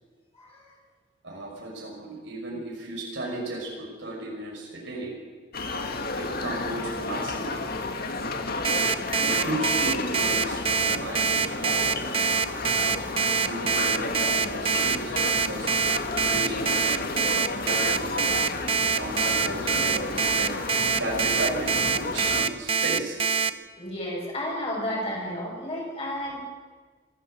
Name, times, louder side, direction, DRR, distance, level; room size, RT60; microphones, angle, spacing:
voice 1, 0.3-0.7 23.8-26.4, left 1 dB, 30° left, -3 dB, 7.7 m, -32 dB
voice 2, 1.2-5.2 6.2-7.6 9.2-12.5 13.5-15.7 16.2-18.1 18.9-23.2, right 1 dB, 65° right, -2 dB, 6.1 m, -35 dB
sound 1, 5.5-22.4, left 3 dB, 50° left, 2.1 m, -32 dB
Alarm, 8.6-23.5, right 5 dB, 30° right, 0.8 m, -24 dB
25.5 x 15.0 x 8.0 m, 1.5 s
head